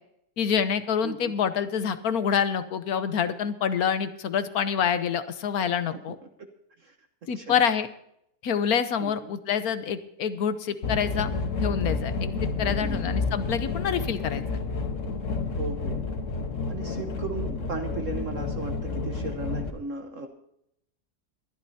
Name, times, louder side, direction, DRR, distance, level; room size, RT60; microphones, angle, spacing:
voice 1, 0.4-6.2 7.3-7.9 8.4-11.3 11.6-12.3 12.6-14.4, left 7 dB, 65° left, 11 dB, 1.3 m, -26 dB
voice 2, 1.0-1.3 5.9-6.0 6.8-7.0 7.3-7.6 9.0-9.3 12.6-13.0 15.6-16.0 16.7-20.3, right 3 dB, 55° right, 5 dB, 1.4 m, -36 dB
sound 1, 10.8-19.7, left 4 dB, 50° left, 1.5 m, -30 dB
22.5 x 11.5 x 2.8 m, 0.75 s
omnidirectional pair, 1.7 m